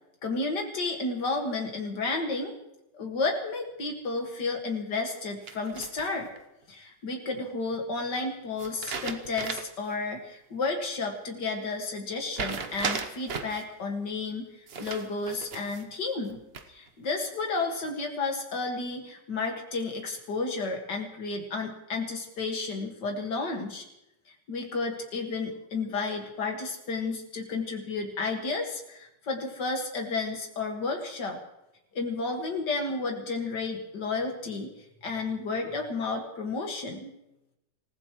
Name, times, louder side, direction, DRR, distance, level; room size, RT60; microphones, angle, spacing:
voice 1, 0.2-2.5 2.9-6.3 6.7-14.5 14.8-16.4 16.7-23.8 24.5-31.4 31.9-34.7 35.0-37.1, left 3 dB, 90° left, 2 dB, 2.6 m, -32 dB
sound 1, 5.5-6.4 8.6-9.9 10.2-10.3 12.3-13.6 14.7-15.9 16.3-16.9, right 5 dB, 40° right, 1.0 m, -36 dB
27.0 x 15.5 x 3.2 m, 0.87 s
omnidirectional pair, 1.8 m